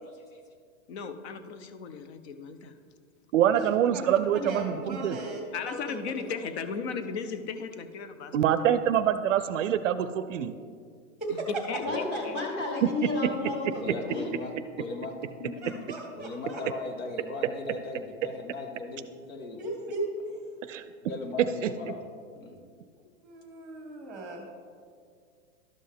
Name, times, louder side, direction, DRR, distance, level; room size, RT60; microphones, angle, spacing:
voice 1, 0.9-2.8 5.5-8.5 8.9-9.0 11.3-12.4 12.9-13.0, left 5 dB, 50° left, 10 dB, 0.8 m, -37 dB
voice 2, 3.3-5.2 8.3-10.5 20.7-20.8 21.6-21.7, right 10 dB, 65° right, 12 dB, 0.5 m, -25 dB
voice 3, 3.9-5.4 5.7-6.0 11.2-11.5 15.6-16.6 19.6-20.1 23.2-24.4, right 2 dB, ahead, 1 dB, 1.2 m, -37 dB
voice 4, 11.8-14.3 15.4-15.8, left 2 dB, 25° left, -1 dB, 1.8 m, -32 dB
voice 5, 13.8-15.1 16.1-19.6 21.0-22.0 22.3-22.6, left 3 dB, 75° left, 4 dB, 1.5 m, -38 dB
12.0 x 5.4 x 3.5 m, 2.1 s
hypercardioid pair, 145°, 41 cm